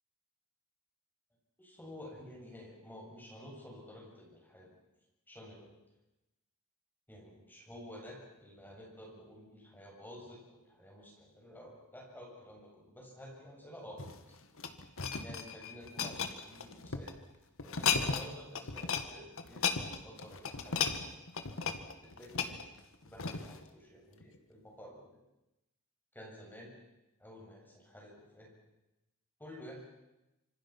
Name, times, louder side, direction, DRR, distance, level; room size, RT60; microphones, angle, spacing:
voice 1, 1.6-4.8 5.3-5.8 7.1-14.2 15.2-17.2 17.6-21.2 22.0-22.6 23.0-25.2 26.1-26.7 27.2-28.5 29.4-29.8, equal, 10° left, -2 dB, 7.7 m, -51 dB
sound 1, 13.9-17.1 17.6-18.3 18.5-19.1 19.4-23.6 24.2-24.4, left 6 dB, 65° left, 1.8 m, -35 dB
26.5 x 26.0 x 6.1 m, 0.94 s
head